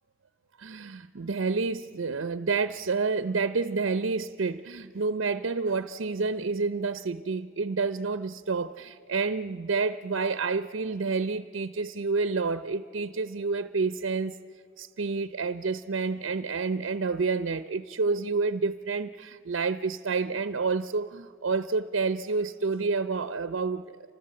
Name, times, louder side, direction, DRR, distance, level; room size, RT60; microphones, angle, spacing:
voice 1, 0.6-14.4 14.8-24.0, right 4 dB, 70° right, 11 dB, 0.6 m, -29 dB
29.0 x 25.5 x 7.6 m, 2.3 s
head